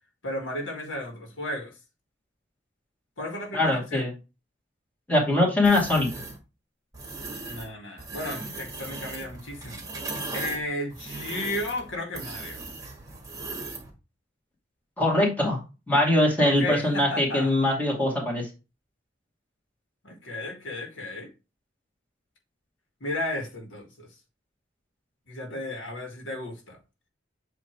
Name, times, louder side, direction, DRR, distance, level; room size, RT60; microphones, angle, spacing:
voice 1, 0.2-1.7 3.2-4.1 7.5-9.8 10.3-12.6 16.4-17.6 20.0-21.3 23.0-24.1 25.3-26.8, left 1 dB, 75° left, 1.8 m, -34 dB
voice 2, 3.5-4.1 5.1-6.1 15.0-15.6 15.9-18.5, left 1 dB, 10° left, 2.3 m, -22 dB
sound 1, 5.6-6.4 6.9-7.7 8.0-13.9, right 3 dB, 20° right, 1.8 m, -37 dB
7.9 x 3.1 x 4.5 m
head